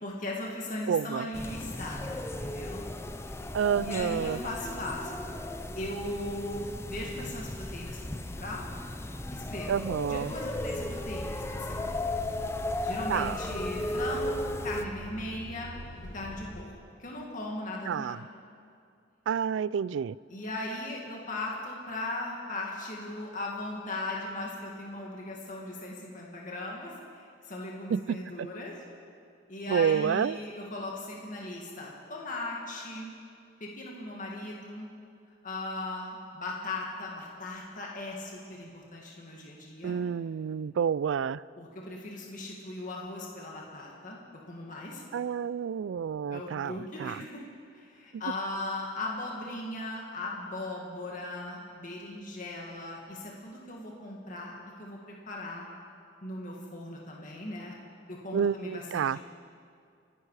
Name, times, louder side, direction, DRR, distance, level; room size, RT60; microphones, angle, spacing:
voice 1, 0.0-2.8 3.3-3.4 3.7-5.4 5.8-8.6 9.3-9.8 10.1-11.9 12.8-15.7 16.1-16.7 17.0-18.2 20.3-28.8 29.5-33.1 33.6-34.9 35.4-40.0 41.6-44.2 44.5-45.0 46.3-47.4 47.7-55.7 56.2-57.8 58.1-59.2, left 2 dB, 45° left, -2 dB, 2.0 m, -38 dB
voice 2, 0.9-1.3 3.5-4.4 9.7-10.3 13.1-13.4 17.9-18.2 19.3-20.2 27.9-28.5 29.7-30.4 39.8-41.4 45.1-46.7 47.0-47.2 58.3-59.2, right 7 dB, 70° right, 21 dB, 0.3 m, -29 dB
sound 1, 1.3-14.9, left 1 dB, 15° left, 0.5 m, -36 dB
sound 2, 10.4-16.6, right 1 dB, 40° right, 1.5 m, -57 dB
Truck, 10.5-16.6, right 1 dB, 60° left, 1.4 m, -44 dB
26.5 x 11.0 x 4.9 m, 2.4 s
head